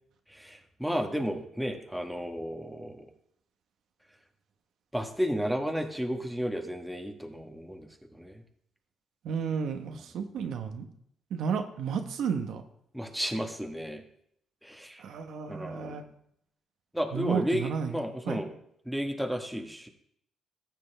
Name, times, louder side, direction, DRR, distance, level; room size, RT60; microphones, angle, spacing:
voice 1, 0.3-3.1 4.9-8.3 12.9-14.0 14.6-15.0 15.5-16.0 16.9-18.5 18.8-19.9, equal, ahead, 3 dB, 1.3 m, -33 dB
voice 2, 9.2-10.9 11.3-12.6 15.0-16.0 17.1-18.4, right 6 dB, 75° right, 6 dB, 1.0 m, -32 dB
15.0 x 6.9 x 3.4 m, 0.70 s
cardioid pair, 90°, 0 cm